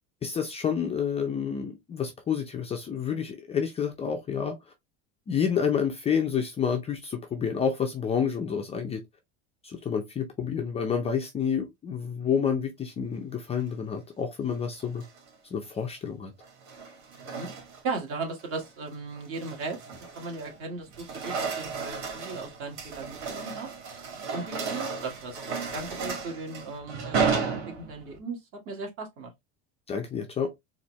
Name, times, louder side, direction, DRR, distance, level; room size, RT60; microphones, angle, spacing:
voice 1, 0.2-4.6 5.3-9.0 9.6-15.0 15.5-16.3 29.9-30.5, left 7 dB, 20° left, 0.5 m, -29 dB
sound 1, 14.8-15.3 16.4-18.0 18.4-18.7 19.2-20.6 20.9-28.2, right 5 dB, 80° right, 1.9 m, -33 dB
voice 2, 17.8-19.8 20.2-23.7 24.3-29.3, right 3 dB, 40° right, 1.6 m, -37 dB
4.2 x 2.6 x 3.0 m
cardioid pair, 150°, 33 cm